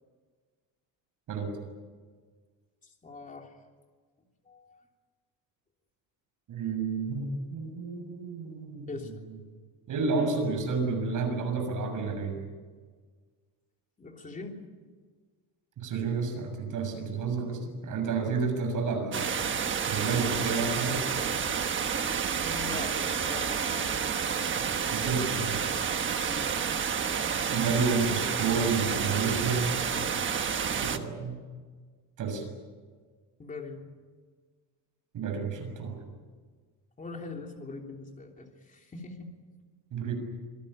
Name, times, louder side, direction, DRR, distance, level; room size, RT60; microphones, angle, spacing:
voice 1, 3.0-3.5 4.4-4.8 8.9-9.1 14.0-14.5 22.3-23.9 26.3-26.9 33.4-33.9 37.0-39.3, left 4 dB, 20° left, 2 dB, 3.2 m, -42 dB
voice 2, 6.5-9.1 9.9-12.4 15.8-19.4 19.9-21.0 24.9-25.7 27.5-29.8 30.7-31.4 32.2-32.4 35.1-36.0 39.9-40.1, right 4 dB, 45° right, 4 dB, 7.0 m, -30 dB
sound 1, 19.1-31.0, right 7 dB, 25° right, 1.3 m, -30 dB
26.5 x 19.0 x 9.0 m, 1.5 s
cardioid pair, 170°, 43 cm